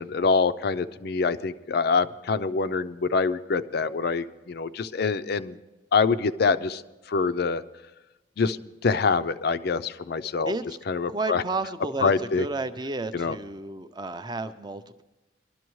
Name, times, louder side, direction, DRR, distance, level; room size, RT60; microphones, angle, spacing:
voice 1, 0.0-5.6 5.9-6.8 7.1-7.6 8.4-10.5 10.9-11.4 12.0-12.5 13.1-13.4, left 4 dB, 50° left, 13 dB, 0.4 m, -25 dB
voice 2, 10.5-10.8 11.1-15.0, right 2 dB, 20° right, 11 dB, 0.5 m, -32 dB
22.5 x 12.0 x 3.1 m, 1.1 s
head